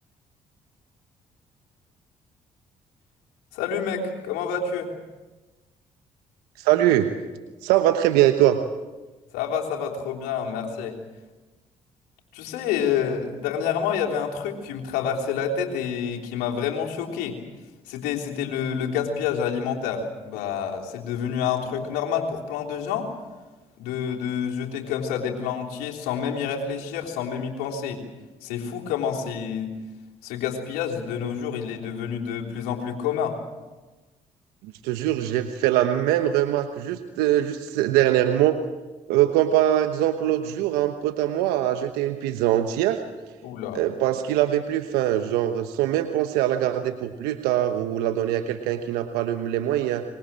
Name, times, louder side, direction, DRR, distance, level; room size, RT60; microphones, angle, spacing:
voice 1, 3.5-4.9 9.3-11.0 12.3-17.4 17.9-23.1 23.8-28.0 28.4-29.7 30.2-33.4 43.4-43.8, left 7 dB, 80° left, 0 dB, 3.4 m, -28 dB
voice 2, 6.6-7.1 7.6-8.6 34.6-38.6 39.1-43.0 43.7-50.0, right 12 dB, 80° right, 8 dB, 1.1 m, -22 dB
24.5 x 22.5 x 7.6 m, 1.2 s
hypercardioid pair, 50°, 16 cm